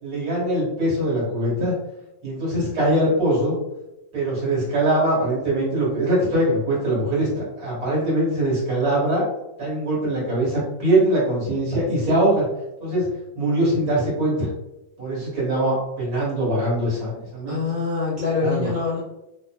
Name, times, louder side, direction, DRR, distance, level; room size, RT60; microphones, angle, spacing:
voice 1, 0.0-1.7 2.2-3.6 4.1-9.2 9.6-12.4 12.8-13.1 13.4-14.5 15.0-17.6 18.4-18.7, right 1 dB, 60° right, -6 dB, 1.6 m, -22 dB
voice 2, 17.5-19.0, left 4 dB, 10° left, -9 dB, 1.2 m, -24 dB
3.3 x 2.5 x 2.2 m, 0.95 s
omnidirectional pair, 2.0 m